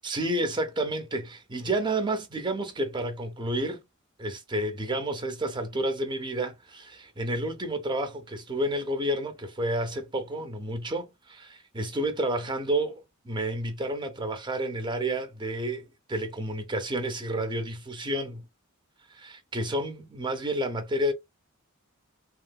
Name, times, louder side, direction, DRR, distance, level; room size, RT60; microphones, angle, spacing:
voice 1, 0.0-3.8 4.2-18.5 19.1-21.1, right 1 dB, 20° right, 0.5 m, -30 dB
3.0 x 2.7 x 2.3 m
head